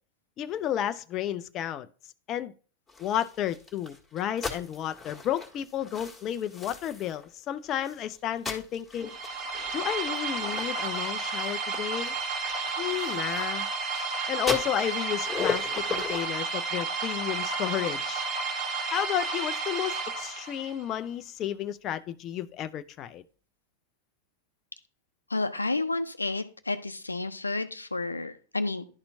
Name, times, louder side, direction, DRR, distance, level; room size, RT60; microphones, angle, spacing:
voice 1, 0.4-1.9 2.3-2.5 3.0-9.4 9.7-12.1 12.8-13.7 14.3-18.3 18.9-23.2, left 11 dB, 35° left, 0.4 m, -32 dB
sound 1, 2.9-7.3 7.7-14.0 14.4-16.3, left 5 dB, 10° left, 1.8 m, -38 dB
sound 2, 9.0-20.8, right 4 dB, 35° right, 1.5 m, -32 dB
voice 2, 25.3-28.8, left 2 dB, 80° left, 0.6 m, -31 dB
11.5 x 4.2 x 2.7 m
figure-of-eight pair, 90°, 0 cm